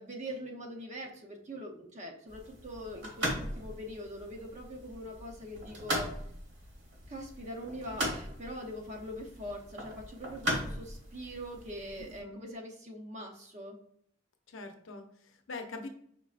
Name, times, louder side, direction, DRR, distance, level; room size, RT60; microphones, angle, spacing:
voice 1, 0.0-6.1 7.1-13.8, equal, 35° right, 1 dB, 0.6 m, -43 dB
sound 1, 2.3-12.2, equal, 60° right, 1.3 m, -39 dB
voice 2, 12.0-12.4 14.5-15.9, left 3 dB, 90° left, 5 dB, 0.7 m, -44 dB
5.2 x 3.3 x 2.4 m, 0.67 s
head